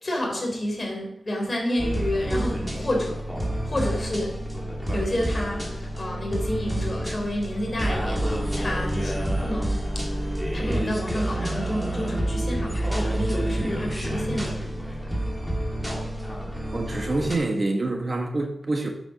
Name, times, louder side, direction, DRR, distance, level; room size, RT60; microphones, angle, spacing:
voice 1, 0.0-3.2 3.6-4.4 4.9-10.1 10.5-14.7, left 1 dB, 35° left, 3.5 m, -30 dB
sound 1, 1.8-17.4, right 1 dB, ahead, 2.0 m, -28 dB
voice 2, 16.7-18.9, right 2 dB, 40° right, 1.2 m, -26 dB
8.4 x 7.1 x 6.1 m
wide cardioid pair, 120°, 0 cm